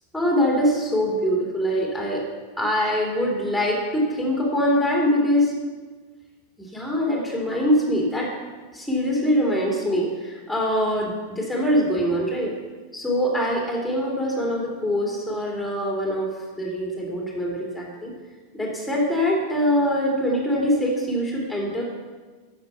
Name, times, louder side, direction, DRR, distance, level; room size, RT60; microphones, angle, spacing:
voice 1, 0.1-2.2 2.6-5.5 6.6-8.4 8.7-12.5 12.9-16.3 16.6-18.1 18.5-21.8, equal, ahead, -2 dB, 2.8 m, -23 dB
9.5 x 7.0 x 5.8 m, 1.3 s
figure-of-eight pair, 90°, 0 cm